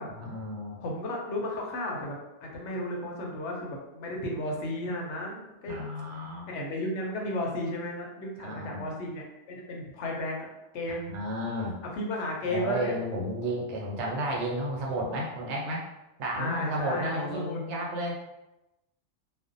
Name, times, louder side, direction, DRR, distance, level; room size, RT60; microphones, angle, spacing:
voice 1, 0.1-0.8 5.7-6.5 8.4-8.8 11.0-11.8 12.5-15.9 16.2-18.1, right 1 dB, 75° right, -2 dB, 0.9 m, -32 dB
voice 2, 0.8-5.7 6.5-10.5 10.7-11.1 11.9-12.9 16.3-17.6, left 1 dB, 80° left, -1 dB, 0.9 m, -34 dB
2.5 x 2.1 x 2.5 m, 0.95 s
omnidirectional pair, 1.2 m